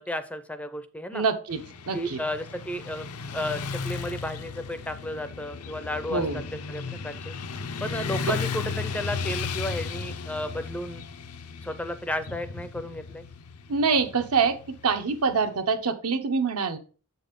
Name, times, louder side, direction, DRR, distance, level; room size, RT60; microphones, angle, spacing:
voice 1, 0.0-1.2 1.9-3.1 3.3-6.2 6.7-7.3 7.8-11.0 11.6-13.2, equal, 5° left, 11 dB, 0.4 m, -33 dB
voice 2, 1.1-1.6 1.9-2.2 6.1-6.4 8.2-8.3 13.7-14.6 14.8-16.8, right 5 dB, 85° right, 7 dB, 0.9 m, -25 dB
Motorcycle / Traffic noise roadway noise, 1.5-15.6, left 5 dB, 90° left, 0.6 m, -35 dB
7.3 x 4.1 x 5.1 m, 0.38 s
head